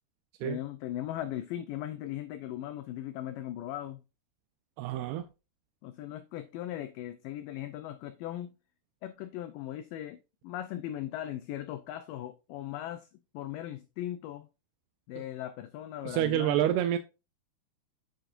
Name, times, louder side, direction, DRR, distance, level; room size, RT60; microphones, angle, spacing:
voice 1, 0.4-4.0 5.8-8.5 9.0-13.1 13.3-14.5 15.1-16.7, left 12 dB, 90° left, 1.9 m, -38 dB
voice 2, 4.8-5.3 16.1-17.0, right 12 dB, 90° right, 2.6 m, -28 dB
8.8 x 8.1 x 2.5 m
omnidirectional pair, 4.5 m